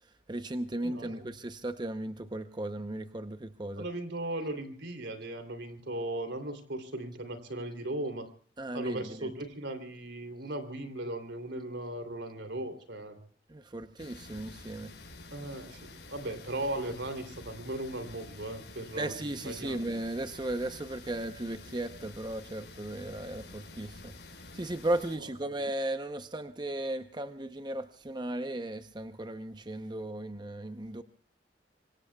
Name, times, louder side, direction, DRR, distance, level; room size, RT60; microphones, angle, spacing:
voice 1, 0.3-3.9 8.6-9.3 13.5-14.9 19.0-24.1 24.5-31.0, right 1 dB, 25° right, 9 dB, 0.7 m, -36 dB
voice 2, 0.8-1.3 3.8-8.3 8.7-13.2 15.3-19.8, right 1 dB, 85° right, 8 dB, 3.0 m, -37 dB
sound 1, 14.0-25.2, left 2 dB, 75° left, 5.8 m, -49 dB
25.5 x 24.0 x 2.3 m, 0.43 s
head